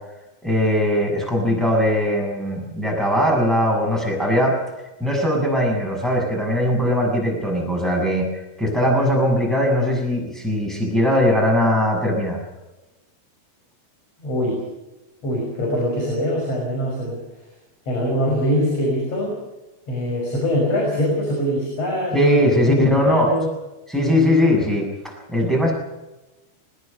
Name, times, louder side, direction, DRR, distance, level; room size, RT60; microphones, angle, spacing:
voice 1, 0.4-4.6 5.0-12.4 22.1-23.3 23.9-25.7, equal, ahead, 0 dB, 6.7 m, -20 dB
voice 2, 14.2-14.6 15.2-17.2 17.9-19.3 19.9-23.5, equal, 40° left, -2 dB, 6.8 m, -23 dB
21.5 x 21.0 x 6.8 m, 1.0 s
omnidirectional pair, 4.4 m